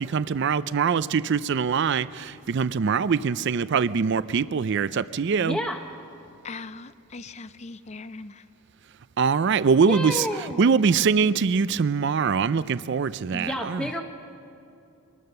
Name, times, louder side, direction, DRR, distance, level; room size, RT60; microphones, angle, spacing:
voice 1, 0.0-5.6 9.2-10.2 10.6-13.8, right 5 dB, 55° right, 15 dB, 0.4 m, -23 dB
voice 2, 5.4-5.8 9.9-10.6 13.3-14.0, equal, 5° left, 2 dB, 0.8 m, -30 dB
voice 3, 6.4-8.4, left 3 dB, 30° left, 14 dB, 0.5 m, -40 dB
24.0 x 19.5 x 6.7 m, 2.7 s
head